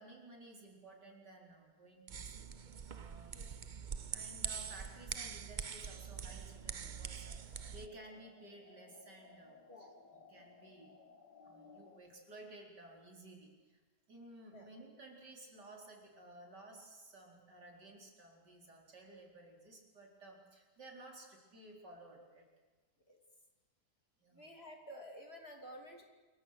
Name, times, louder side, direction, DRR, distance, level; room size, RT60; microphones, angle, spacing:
voice 1, 0.0-3.4 4.1-9.6 10.3-10.9 11.4-13.8 14.1-22.5 24.2-24.5, right 2 dB, 70° right, 0 dB, 4.9 m, -55 dB
sound 1, 2.1-7.9, right 6 dB, 50° right, 0.5 m, -44 dB
sound 2, 6.1-12.0, left 4 dB, 70° left, 2.5 m, -61 dB
voice 2, 9.7-10.0 14.5-14.7 23.1-23.2 24.3-26.0, equal, 35° left, 2 dB, 3.1 m, -52 dB
28.0 x 23.0 x 6.6 m, 1.3 s
omnidirectional pair, 1.9 m